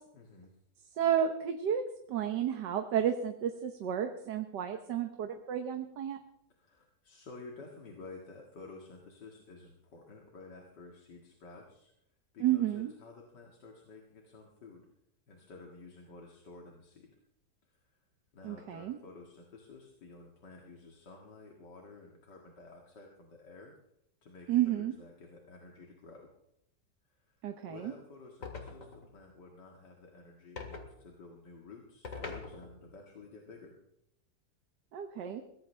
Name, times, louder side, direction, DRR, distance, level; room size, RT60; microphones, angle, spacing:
voice 1, 0.1-0.6 6.6-11.9 12.3-14.9 15.3-17.2 17.7-18.0 18.3-23.7 24.2-26.3 27.1-33.8, left 3 dB, 90° left, 0 dB, 2.6 m, -52 dB
voice 2, 1.0-1.8 2.1-6.2 12.4-12.9 18.4-19.0 24.5-24.9 27.4-27.9 34.9-35.4, right 10 dB, 85° right, 6 dB, 1.6 m, -31 dB
sound 1, 28.4-29.1 30.6-30.9 32.0-32.9, left 4 dB, 50° left, 2.4 m, -43 dB
22.5 x 17.5 x 3.3 m, 0.78 s
omnidirectional pair, 1.8 m